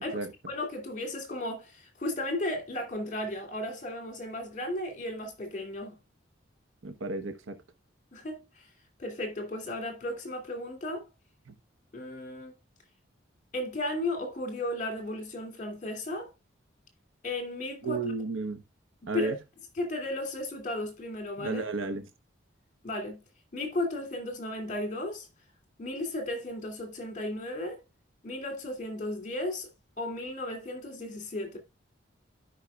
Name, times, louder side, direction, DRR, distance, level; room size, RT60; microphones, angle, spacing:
voice 1, 0.5-6.0 8.1-8.7 9.0-11.0 11.9-12.5 13.5-16.3 17.2-18.1 19.1-19.4 19.8-21.6 22.8-23.2 23.5-25.3 25.8-27.8 28.2-29.7 30.0-31.6, left 1 dB, 40° left, 2.6 m, -35 dB
voice 2, 6.8-7.6 11.5-11.6 17.8-18.6 19.1-19.4 21.4-22.0, right 3 dB, 85° right, 1.0 m, -32 dB
13.0 x 5.7 x 2.4 m
head